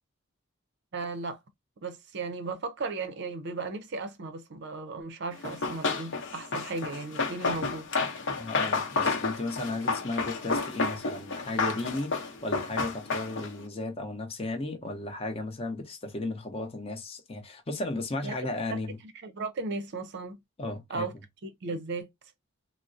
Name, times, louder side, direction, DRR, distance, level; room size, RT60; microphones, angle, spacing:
voice 1, 0.9-1.4 1.8-7.9 18.2-18.4 18.7-20.4 20.9-21.1 21.4-22.1, right 3 dB, 55° right, 0.5 m, -36 dB
Run, 5.4-13.6, left 4 dB, 60° left, 0.7 m, -31 dB
voice 2, 8.4-19.0 20.6-21.1, left 2 dB, 25° left, 0.6 m, -35 dB
3.5 x 2.0 x 2.5 m
head